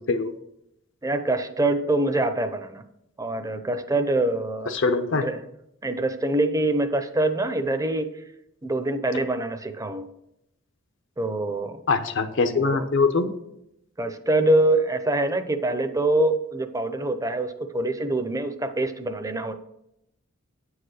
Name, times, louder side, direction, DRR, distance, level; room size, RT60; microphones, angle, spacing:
voice 1, 1.0-2.8 3.2-4.8 5.2-5.4 5.8-8.1 8.6-10.1 11.2-11.8 12.4-12.9 14.0-19.5, right 2 dB, 15° right, 8 dB, 0.6 m, -25 dB
voice 2, 4.7-5.3 11.9-13.3, left 4 dB, 60° left, 9 dB, 0.8 m, -23 dB
9.3 x 4.8 x 6.4 m, 0.81 s
head